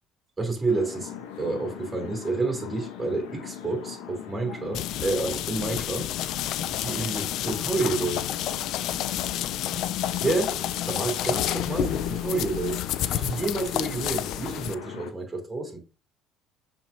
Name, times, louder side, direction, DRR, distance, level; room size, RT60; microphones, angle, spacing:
voice 1, 0.4-1.1 1.4-6.1 6.7-8.3 10.2-15.8, right 3 dB, 20° right, 3.6 m, -29 dB
sound 1, 0.7-15.1, left 9 dB, 90° left, 1.0 m, -41 dB
sound 2, 4.7-14.7, left 12 dB, 70° left, 0.4 m, -30 dB
7.3 x 4.6 x 2.8 m
supercardioid pair, 95°, 0 cm